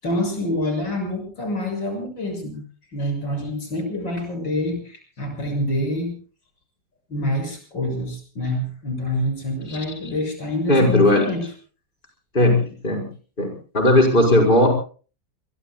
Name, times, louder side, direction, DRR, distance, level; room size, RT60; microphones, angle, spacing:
voice 1, 0.0-2.6 2.9-6.2 7.1-11.5, left 1 dB, 90° left, 5 dB, 7.4 m, -26 dB
voice 2, 10.7-11.3 12.3-13.1 13.4-14.7, left 1 dB, 25° left, 1 dB, 5.4 m, -17 dB
27.5 x 22.5 x 2.3 m, 0.38 s
omnidirectional pair, 2.0 m